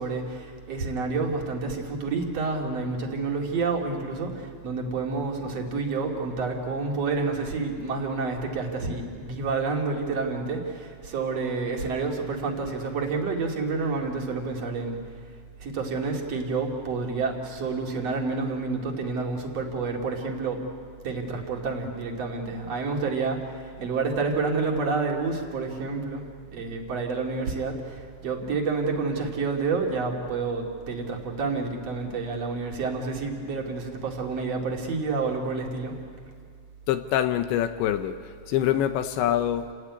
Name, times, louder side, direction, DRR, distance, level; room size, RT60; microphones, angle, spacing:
voice 1, 0.0-15.0 15.6-20.6 21.0-26.2 26.5-36.0, right 4 dB, 40° right, 1 dB, 2.8 m, -29 dB
voice 2, 36.9-38.2 38.5-39.7, left 11 dB, 80° left, 9 dB, 3.0 m, -25 dB
29.5 x 17.5 x 9.6 m, 2.1 s
omnidirectional pair, 5.5 m